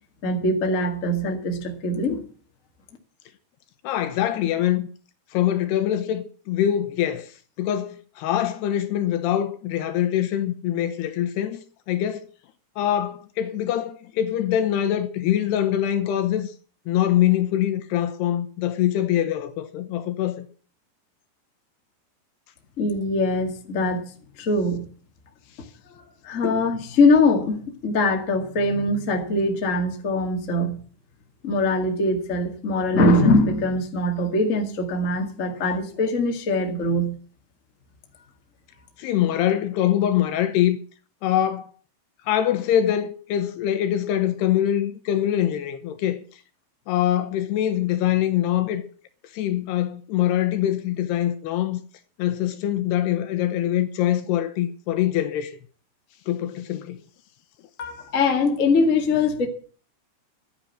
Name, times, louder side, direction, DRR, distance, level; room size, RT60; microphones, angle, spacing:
voice 1, 0.2-2.2 22.8-24.1 24.4-24.9 25.9-30.8 31.4-37.2 57.8-59.5, left 2 dB, 35° left, 1.2 m, -22 dB
voice 2, 3.8-4.9 5.3-7.3 7.6-12.3 12.8-16.5 16.9-20.5 39.0-40.8 41.2-41.7 42.3-46.2 46.9-48.8 49.3-51.8 52.2-55.6 56.3-57.0, left 11 dB, 75° left, 2.9 m, -24 dB
12.5 x 9.9 x 7.3 m
omnidirectional pair, 5.1 m